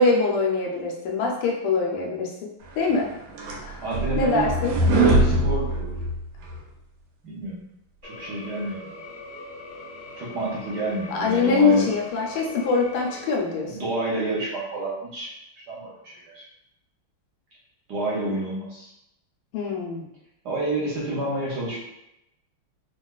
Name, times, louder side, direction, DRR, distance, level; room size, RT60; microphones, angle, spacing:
voice 1, 0.0-2.3 2.7-3.1 3.6-3.8 4.2-4.8 11.1-13.8 19.5-20.0, left 4 dB, 85° left, 0 dB, 1.6 m, -23 dB
sound 1, 2.9-6.6, right 2 dB, 85° right, 1.5 m, -22 dB
voice 2, 3.8-4.6 4.9-6.0 7.2-7.6 8.0-9.0 10.2-11.9 13.7-15.3 15.7-16.4 17.9-18.9 20.4-21.8, right 2 dB, 65° right, -5 dB, 1.1 m, -29 dB
sound 2, 8.0-13.4, left 2 dB, 45° left, 1.1 m, -41 dB
3.8 x 2.3 x 2.3 m, 0.82 s
omnidirectional pair, 2.3 m